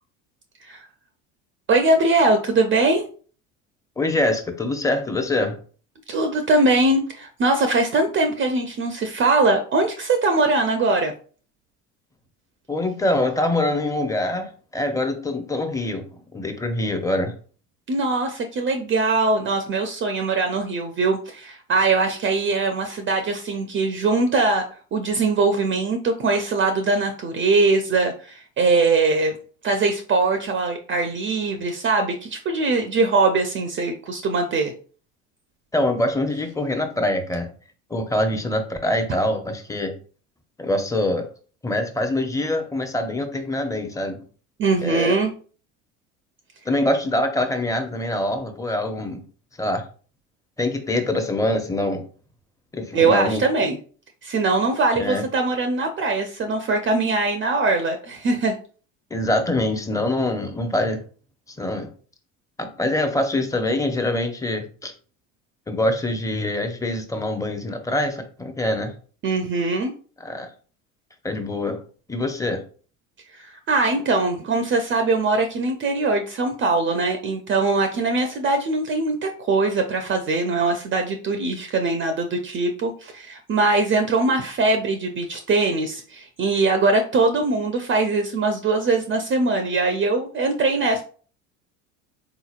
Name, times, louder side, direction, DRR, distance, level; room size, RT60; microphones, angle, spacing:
voice 1, 1.7-3.1 6.1-11.1 17.9-24.6 24.9-29.3 29.6-34.7 44.6-45.3 52.9-53.8 54.2-58.5 69.2-69.9 73.3-91.0, right 3 dB, 30° right, 6 dB, 0.5 m, -21 dB
voice 2, 4.0-5.6 12.7-16.0 16.3-17.3 35.7-37.5 37.9-39.9 40.6-41.3 41.6-44.2 44.8-45.2 46.7-49.2 49.6-49.8 50.6-52.1 52.7-53.5 55.0-55.2 59.1-61.0 61.5-61.9 62.6-64.9 65.7-68.9 70.2-70.5 71.2-71.8 72.1-72.6, left 1 dB, 10° left, 6 dB, 0.6 m, -24 dB
3.9 x 2.9 x 2.4 m, 0.40 s
hypercardioid pair, 75°, 39 cm